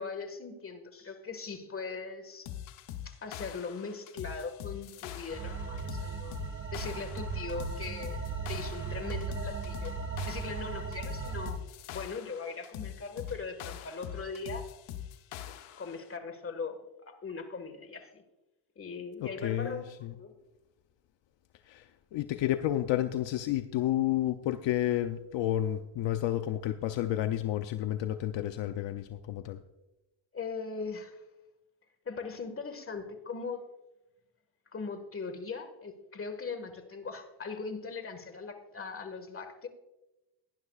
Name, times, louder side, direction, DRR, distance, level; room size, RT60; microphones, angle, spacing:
voice 1, 0.0-2.5 3.1-6.4 6.7-9.9 10.2-11.6 11.9-14.7 15.5-18.2 18.8-20.3 30.3-31.2 32.1-33.7 34.7-39.7, left 4 dB, 25° left, 7 dB, 1.7 m, -40 dB
sound 1, 2.4-16.0, left 11 dB, 85° left, 1.0 m, -43 dB
sound 2, 5.3-11.5, right 5 dB, 25° right, 1.4 m, -37 dB
voice 2, 19.2-20.1 21.7-29.6, left 12 dB, 65° left, 8 dB, 0.7 m, -31 dB
18.0 x 10.5 x 2.4 m, 0.99 s
cardioid pair, 100°, 48 cm